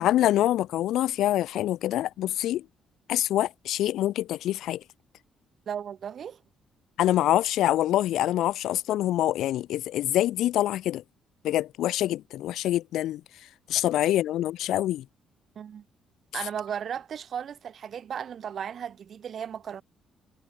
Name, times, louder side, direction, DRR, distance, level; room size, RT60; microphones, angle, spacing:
voice 1, 0.0-2.6 3.1-4.8 7.0-11.0 11.4-13.2 13.7-15.0, left 13 dB, 80° left, 0.8 m, -25 dB
voice 2, 5.7-6.4 15.5-15.8 16.3-19.8, right 8 dB, 55° right, 1.6 m, -35 dB
cardioid pair, 90°, 0 cm